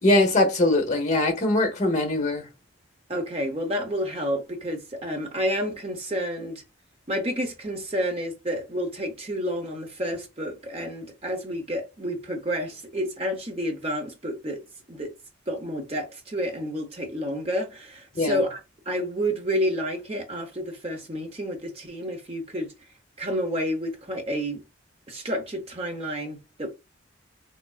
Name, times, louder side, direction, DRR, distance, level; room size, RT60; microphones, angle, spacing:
voice 1, 0.0-2.4 18.1-18.4, left 2 dB, 35° left, 0.9 m, -22 dB
voice 2, 3.1-6.6 7.1-14.6 14.9-15.1 15.5-18.6 18.9-22.7 23.2-24.6 25.1-26.7, equal, 30° right, 0.8 m, -30 dB
3.5 x 3.2 x 2.3 m
head